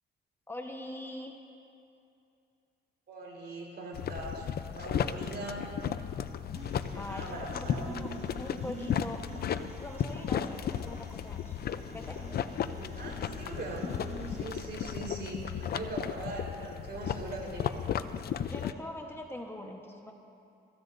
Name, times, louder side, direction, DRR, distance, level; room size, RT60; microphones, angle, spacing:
voice 1, 0.5-1.3 6.9-8.1 8.4-9.2 9.8-11.6 11.9-12.2 18.5-20.1, left 1 dB, 10° left, 1 dB, 1.2 m, -42 dB
voice 2, 3.1-5.7 6.9-8.0 8.5-8.7 13.0-13.9 14.3-17.8, right 2 dB, 55° right, -2 dB, 4.2 m, -41 dB
sound 1, 3.9-18.7, left 8 dB, 50° left, 0.5 m, -35 dB
sound 2, 6.6-14.6, right 3 dB, 35° right, 1.5 m, -47 dB
24.5 x 15.0 x 2.7 m, 2.6 s
cardioid pair, 90°, 20 cm